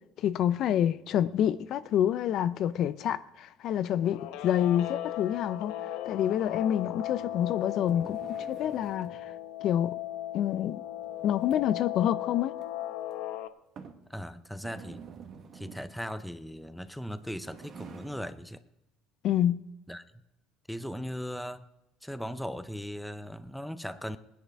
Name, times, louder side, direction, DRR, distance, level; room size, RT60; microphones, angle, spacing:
voice 1, 0.2-5.7 6.1-9.3 9.6-10.0 10.3-10.8 11.2-12.5 19.2-19.7, left 10 dB, 50° left, 0.5 m, -27 dB
Guitar, 4.0-13.5, left 13 dB, 80° left, 0.8 m, -37 dB
sound 1, 7.1-9.2 11.0-11.9 12.5-12.6 13.1-13.2 13.8-14.1 14.5-16.0 17.1-18.3, right 6 dB, 40° right, 1.3 m, -49 dB
voice 2, 14.1-15.0 15.5-18.6 19.9-20.0 20.7-21.7 22.0-24.2, equal, ahead, 0.6 m, -38 dB
18.5 x 10.0 x 4.7 m
cardioid pair, 140°, 0 cm